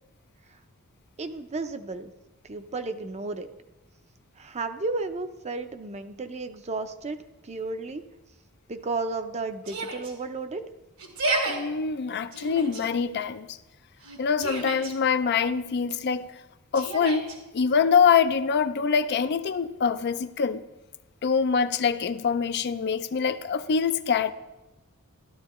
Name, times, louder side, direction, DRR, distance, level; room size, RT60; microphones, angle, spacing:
voice 1, 1.2-2.1 2.5-3.5 4.4-7.2 7.4-8.0 8.7-10.6, right 3 dB, 30° right, 0.6 m, -33 dB
Yell, 9.6-10.1 11.0-11.6 12.3-12.8 14.0-14.9 16.7-17.4, right 2 dB, 80° right, 2.2 m, -30 dB
voice 2, 11.5-13.5 14.2-16.3 16.7-17.3 17.5-20.6 21.2-24.3, left 6 dB, 50° left, 0.4 m, -24 dB
13.5 x 12.5 x 3.0 m
head